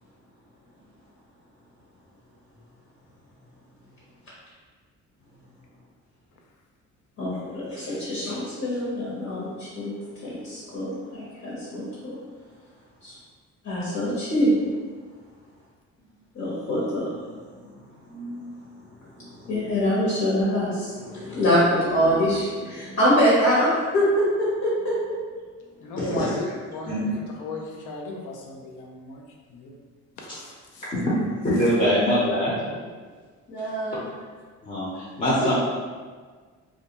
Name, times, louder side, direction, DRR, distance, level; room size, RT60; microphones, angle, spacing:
voice 1, 7.2-9.9 10.2-12.2 13.0-13.1 13.6-14.5 16.3-17.1 17.6-17.7 18.1-18.4 19.2-25.2 33.5-34.0 35.4-35.5, equal, 65° left, -8 dB, 1.0 m, -24 dB
voice 2, 25.8-29.2 29.5-29.8 30.2-30.9, left 2 dB, 90° left, 0 dB, 0.5 m, -36 dB
voice 3, 31.4-32.6 34.6-35.5, equal, 25° left, -8 dB, 0.6 m, -23 dB
2.3 x 2.1 x 2.8 m, 1.5 s
cardioid pair, 90°, 30 cm